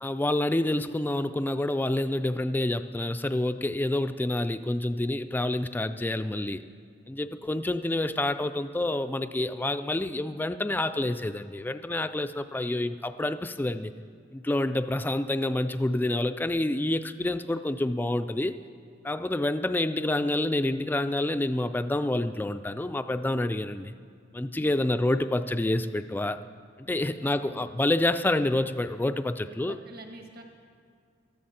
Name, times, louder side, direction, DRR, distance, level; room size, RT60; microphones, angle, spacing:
voice 1, 0.0-6.6 7.1-13.9 14.3-18.6 19.0-23.9 24.3-26.4 26.8-29.8, left 1 dB, 10° left, 10 dB, 0.3 m, -28 dB
voice 2, 24.6-24.9 26.9-27.8 29.4-30.4, right 1 dB, 55° right, 3 dB, 1.5 m, -48 dB
19.0 x 13.5 x 4.3 m, 2.1 s
head